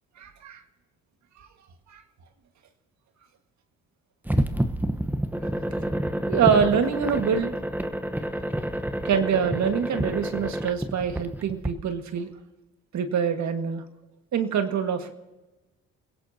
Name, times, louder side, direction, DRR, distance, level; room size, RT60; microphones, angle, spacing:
voice 1, 0.2-0.6 1.4-1.5 1.9-2.0 4.4-4.5 5.8-5.9 6.3-7.5 9.0-12.3 12.9-13.8 14.3-15.1, right 7 dB, 65° right, 6 dB, 1.8 m, -25 dB
sound 1, 4.3-11.7, right 1 dB, 5° right, 1.0 m, -28 dB
29.0 x 16.5 x 2.8 m, 1.1 s
cardioid pair, 90°, 30 cm